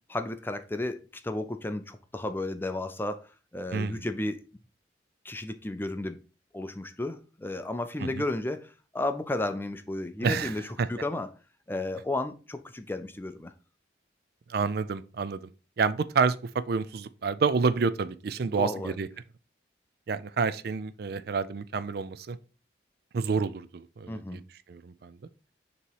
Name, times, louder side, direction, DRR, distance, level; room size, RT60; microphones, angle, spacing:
voice 1, 0.1-4.4 5.2-6.2 6.5-11.3 11.7-13.5 18.4-19.0 24.1-24.4, left 2 dB, 10° left, 0.4 m, -33 dB
voice 2, 3.7-4.1 8.0-8.1 10.2-10.5 10.8-10.9 14.5-15.4 15.8-19.1 20.1-22.4 23.1-24.4 24.7-25.1, right 5 dB, 55° right, 0.4 m, -28 dB
6.8 x 3.0 x 4.6 m
head